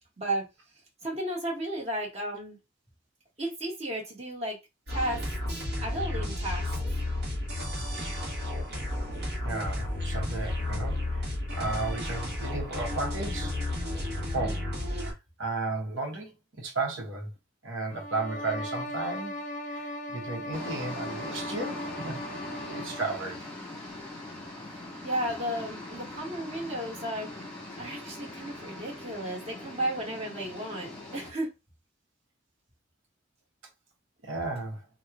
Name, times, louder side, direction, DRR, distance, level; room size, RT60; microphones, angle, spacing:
voice 1, 0.2-0.5 1.0-2.6 3.4-4.6 4.9-5.2 5.8-6.6 25.0-27.3 27.8-31.5, right 1 dB, 35° right, 1.3 m, -33 dB
sound 1, 4.9-15.1, left 1 dB, 55° right, 1.2 m, -32 dB
voice 2, 9.4-11.2 11.5-13.5 14.3-15.1 15.4-17.3 17.6-19.4 19.7-22.2 22.6-23.4 34.2-34.8, right 3 dB, 80° right, 1.0 m, -34 dB
sound 2, 17.9-23.3, left 1 dB, 40° left, 0.6 m, -38 dB
sound 3, 20.5-31.3, left 2 dB, 5° left, 1.2 m, -41 dB
2.9 x 2.2 x 3.5 m
head